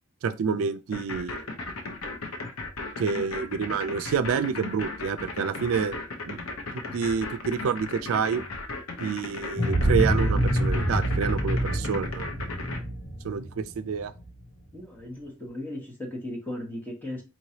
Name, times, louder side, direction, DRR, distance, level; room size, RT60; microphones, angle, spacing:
voice 1, 0.2-1.4 3.0-6.5 6.7-8.4 9.0-12.3 13.2-14.1, right 6 dB, 75° right, 0.4 m, -28 dB
sound 1, 0.9-12.8, left 3 dB, 90° left, 0.9 m, -35 dB
sound 2, 9.6-14.3, equal, 40° left, 1.2 m, -26 dB
voice 2, 14.7-17.2, left 1 dB, 10° left, 1.1 m, -36 dB
4.5 x 3.1 x 2.8 m
head